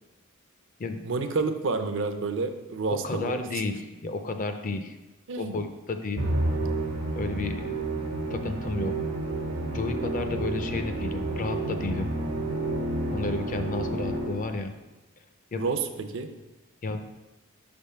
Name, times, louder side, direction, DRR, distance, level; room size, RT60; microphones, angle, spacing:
voice 1, 1.0-3.4 5.3-5.6 15.6-16.3, right 4 dB, 60° right, 8 dB, 0.5 m, -29 dB
voice 2, 2.9-5.0 5.4-6.2 7.1-7.8 8.3-8.9 9.7-12.1 13.1-14.7 15.5-15.7 16.8-17.0, left 3 dB, 40° left, 7 dB, 0.5 m, -32 dB
Musical instrument, 6.2-14.7, right 2 dB, 85° right, 1.1 m, -30 dB
5.8 x 3.5 x 5.5 m, 1.1 s
head